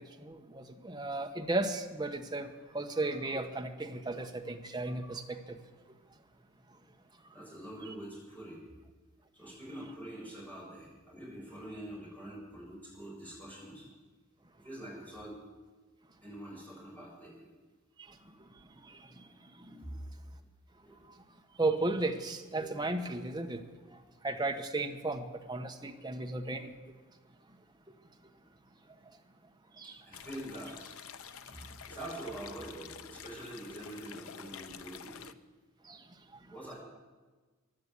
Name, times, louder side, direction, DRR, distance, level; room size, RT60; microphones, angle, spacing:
voice 1, 0.0-5.6 18.9-19.2 19.7-19.8 21.6-23.6 24.2-26.7 29.8-29.9 35.9-36.0, right 2 dB, 20° right, 4 dB, 1.0 m, -35 dB
voice 2, 7.3-8.6 9.3-13.9 14.6-15.4 16.2-17.5 20.8-21.0 29.8-31.0 31.5-35.2 36.5-36.7, right 1 dB, 10° left, -5 dB, 6.9 m, -45 dB
sound 1, 30.1-35.3, left 7 dB, 75° left, 0.7 m, -49 dB
15.5 x 11.0 x 8.3 m, 1.3 s
head